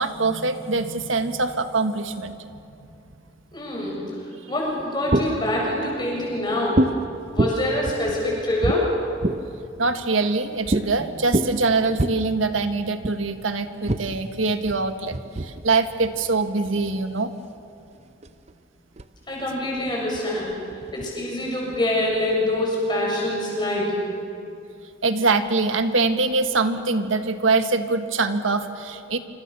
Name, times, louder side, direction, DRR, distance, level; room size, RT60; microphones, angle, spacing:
voice 1, 0.0-2.4 9.8-17.3 25.0-29.2, right 3 dB, 90° right, 9 dB, 1.6 m, -23 dB
voice 2, 3.5-4.2 4.5-6.9 7.3-8.9 19.3-20.5 20.9-24.0, left 1 dB, 25° left, -3 dB, 7.5 m, -25 dB
sound 1, 4.7-5.6 6.8-7.0 7.4-9.6 10.7-10.9 11.2-12.1 13.0-13.2 13.9-17.3 18.0-18.5 19.0-19.1 19.3-21.1 21.7-22.6, right 1 dB, 35° right, 0.7 m, -26 dB
26.5 x 26.5 x 7.0 m, 2.6 s
head